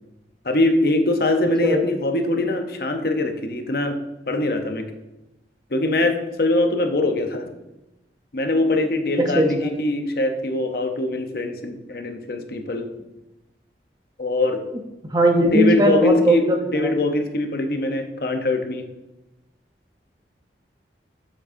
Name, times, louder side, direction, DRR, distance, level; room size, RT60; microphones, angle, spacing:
voice 1, 0.4-4.0 4.3-4.8 5.7-7.4 8.3-12.9 14.2-14.6 15.5-16.4 16.7-18.8, left 2 dB, 60° left, 5 dB, 0.8 m, -22 dB
voice 2, 9.2-9.7 15.1-17.0, right 1 dB, 20° right, 3 dB, 0.7 m, -19 dB
8.6 x 7.3 x 2.7 m, 0.98 s
head